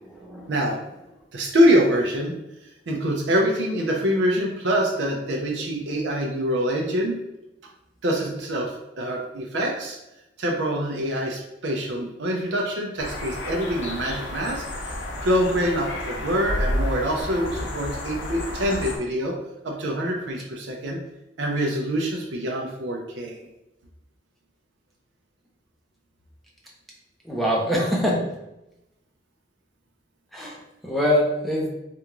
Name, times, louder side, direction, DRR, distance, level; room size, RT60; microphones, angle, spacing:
voice 1, 0.1-0.5 27.2-28.3 30.3-31.7, equal, ahead, -4 dB, 0.7 m, -24 dB
voice 2, 1.3-2.3 2.9-7.2 8.0-10.0 10.4-14.9 15.2-19.4 19.6-21.0 21.4-23.4, equal, 75° right, -1 dB, 0.5 m, -25 dB
sound 1, 13.0-19.0, left 1 dB, 85° left, 0.7 m, -31 dB
3.4 x 2.5 x 2.9 m, 0.90 s
head